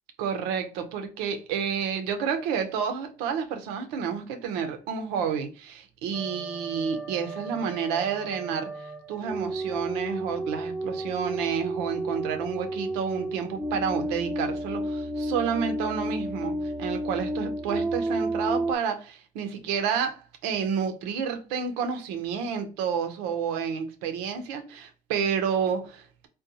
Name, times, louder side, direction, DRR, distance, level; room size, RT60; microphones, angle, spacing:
voice 1, 0.2-26.3, right 7 dB, 85° right, 0.6 m, -30 dB
sound 1, 6.1-18.7, right 1 dB, 5° right, 0.7 m, -32 dB
3.8 x 2.2 x 2.7 m
hypercardioid pair, 55°, 17 cm